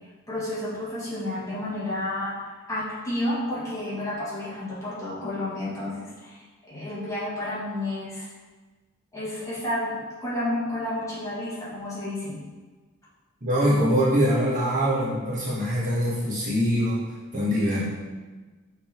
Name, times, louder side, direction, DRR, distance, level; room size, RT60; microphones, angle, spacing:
voice 1, 0.3-2.4 2.7-8.3 9.1-9.9 10.2-12.4, left 1 dB, 15° left, -9 dB, 1.8 m, -31 dB
voice 2, 13.4-17.0 17.3-17.8, equal, 40° right, -7 dB, 1.4 m, -23 dB
5.8 x 3.9 x 4.5 m, 1.3 s
head